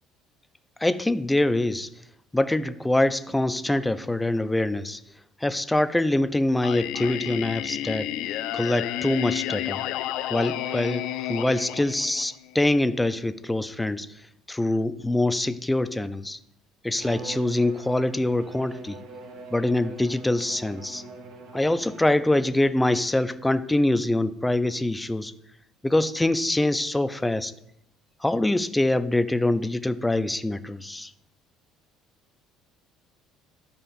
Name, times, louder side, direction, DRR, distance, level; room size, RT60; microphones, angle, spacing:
voice 1, 0.8-1.9 2.3-5.0 5.4-8.1 8.5-9.8 10.3-14.2 14.5-16.4 16.8-19.0 19.5-21.0 21.5-25.3 25.8-27.5 28.2-31.1, left 1 dB, 10° left, 13 dB, 0.4 m, -24 dB
Singing, 6.6-12.6, left 13 dB, 75° left, 0.3 m, -31 dB
Bowed string instrument, 17.0-22.6, right 3 dB, 65° right, 1.3 m, -43 dB
12.5 x 5.2 x 2.5 m, 0.78 s
cardioid pair, 115°, 0 cm